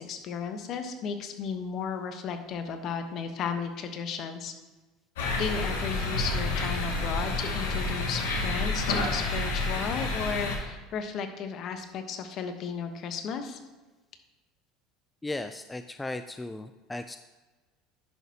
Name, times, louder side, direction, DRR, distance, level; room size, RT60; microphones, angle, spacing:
voice 1, 0.0-4.5 5.3-13.6, left 6 dB, 50° left, 7 dB, 1.0 m, -34 dB
sound 1, 5.2-10.6, left 2 dB, 80° left, 2.0 m, -29 dB
voice 2, 15.2-17.2, left 2 dB, 10° left, 9 dB, 0.4 m, -36 dB
10.5 x 6.2 x 2.8 m, 1.2 s
hypercardioid pair, 85°, 0 cm